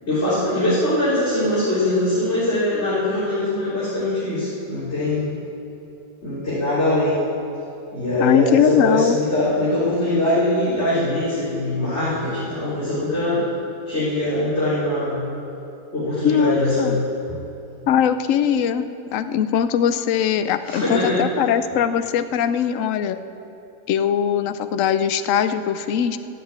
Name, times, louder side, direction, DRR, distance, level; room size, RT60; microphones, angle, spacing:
voice 1, 0.0-5.4 6.2-7.2 7.9-13.5 13.9-15.2 15.9-17.0 20.6-21.2, left 1 dB, 35° left, -12 dB, 3.9 m, -22 dB
voice 2, 8.2-9.2 16.2-17.0 17.9-18.9 19.1-23.2 23.9-26.2, left 8 dB, 65° left, 11 dB, 0.8 m, -20 dB
13.0 x 7.9 x 8.7 m, 2.8 s
omnidirectional pair, 1.9 m